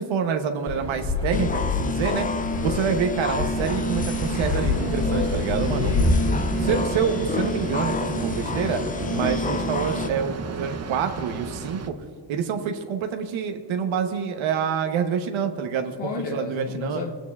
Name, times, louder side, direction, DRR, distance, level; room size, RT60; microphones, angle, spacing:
voice 1, 0.0-2.3 2.6-5.9 6.6-12.0 12.3-17.0, right 7 dB, 75° right, 6 dB, 1.0 m, -27 dB
Fixed-wing aircraft airplane, 0.7-6.2, left 3 dB, 35° left, 2.6 m, -27 dB
sound 1, 1.3-10.1, left 3 dB, 20° left, 0.4 m, -29 dB
sound 2, 3.5-11.9, right 5 dB, 35° right, 0.7 m, -32 dB
voice 2, 5.6-6.6 16.0-17.1, left 5 dB, 65° left, 2 dB, 0.9 m, -32 dB
17.5 x 9.0 x 2.4 m, 2.1 s
cardioid pair, 85°, 47 cm